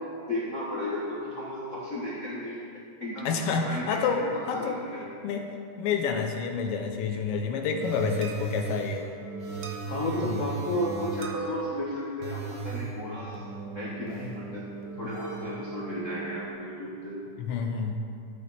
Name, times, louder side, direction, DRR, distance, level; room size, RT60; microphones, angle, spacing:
voice 1, 0.0-2.6 3.0-4.0 4.3-5.1 9.9-14.7 15.0-17.2, left 1 dB, 65° left, -7 dB, 0.7 m, -34 dB
voice 2, 3.2-4.8 5.2-9.1 10.2-10.4 17.4-18.0, left 5 dB, 85° left, 3 dB, 1.3 m, -29 dB
sound 1, 7.8-16.4, right 4 dB, 75° right, 1.0 m, -37 dB
12.0 x 9.3 x 4.1 m, 2.5 s
omnidirectional pair, 3.5 m